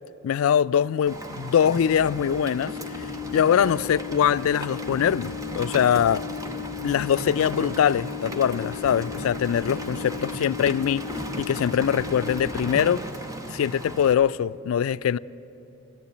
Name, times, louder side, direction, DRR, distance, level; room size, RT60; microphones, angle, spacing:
voice 1, 0.2-2.8 3.3-6.2 6.8-11.0 11.4-13.0 13.5-15.2, left 8 dB, 75° left, 0.3 m, -23 dB
Rain, 1.1-14.1, right 1 dB, 15° right, 0.9 m, -36 dB
sound 1, 2.2-12.2, left 11 dB, 60° right, 1.9 m, -37 dB
14.5 x 12.0 x 8.3 m
head